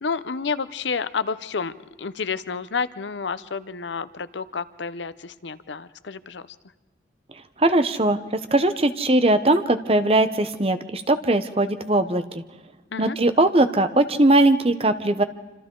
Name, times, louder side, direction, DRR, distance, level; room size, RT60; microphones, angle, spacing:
voice 1, 0.0-1.7 2.0-6.4 12.9-13.2, left 5 dB, 80° left, 14 dB, 0.7 m, -30 dB
voice 2, 7.6-8.2 8.5-12.4 13.0-15.2, right 2 dB, 30° right, 10 dB, 0.9 m, -20 dB
27.0 x 26.0 x 3.8 m, 1.2 s
head